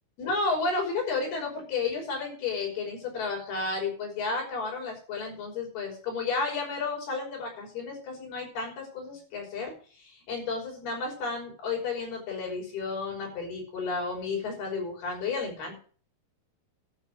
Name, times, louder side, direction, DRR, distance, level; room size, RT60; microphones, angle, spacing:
voice 1, 0.2-15.8, left 4 dB, 80° left, -1 dB, 7.5 m, -32 dB
12.5 x 7.6 x 7.9 m, 0.42 s
omnidirectional pair, 4.4 m